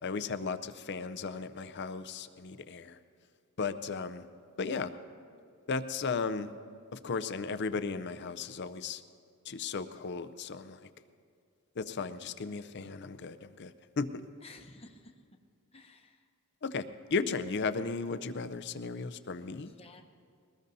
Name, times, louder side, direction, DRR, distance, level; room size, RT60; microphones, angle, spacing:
voice 1, 0.0-3.0 3.6-4.2 4.6-4.9 5.7-6.5 6.9-9.0 9.4-10.9 11.8-14.2 16.6-19.7, left 4 dB, 50° left, 13 dB, 0.5 m, -35 dB
voice 2, 14.4-15.1 15.7-16.2 19.7-20.0, left 3 dB, 25° left, 4 dB, 0.9 m, -53 dB
22.0 x 19.5 x 2.7 m, 2.3 s
head